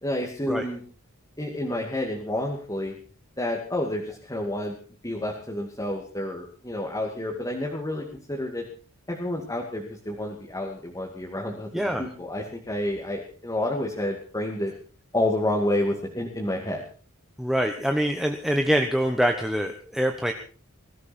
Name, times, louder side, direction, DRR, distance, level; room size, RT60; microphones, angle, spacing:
voice 1, 0.0-0.8 1.4-2.9 3.4-4.7 5.0-8.7 9.1-14.7 15.1-16.9, left 1 dB, 15° left, 0 dB, 2.4 m, -29 dB
voice 2, 11.7-12.0 17.4-20.3, equal, ahead, 4 dB, 1.2 m, -24 dB
21.5 x 14.0 x 4.5 m, 0.40 s
head